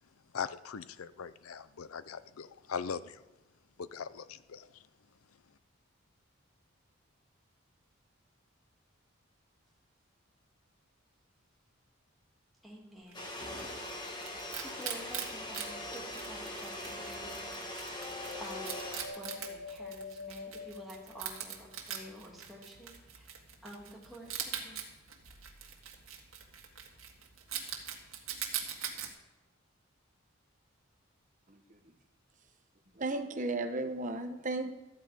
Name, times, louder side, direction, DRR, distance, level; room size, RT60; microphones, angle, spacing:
voice 1, 0.3-3.2 3.8-4.8, left 6 dB, 90° left, 15 dB, 0.6 m, -40 dB
voice 2, 12.6-13.4 14.6-18.0 18.4-18.8 19.1-23.3 23.6-24.8, equal, ahead, -4 dB, 2.7 m, -49 dB
sound 1, 13.1-19.1, left 1 dB, 20° left, 1.7 m, -41 dB
Wild animals, 13.1-29.1, right 8 dB, 75° right, 1.9 m, -43 dB
sound 2, 15.8-16.5 17.9-21.8, left 4 dB, 70° left, 3.5 m, -46 dB
voice 3, 33.0-34.7, right 2 dB, 35° right, 6 dB, 1.1 m, -34 dB
13.5 x 10.5 x 5.1 m, 1.1 s
head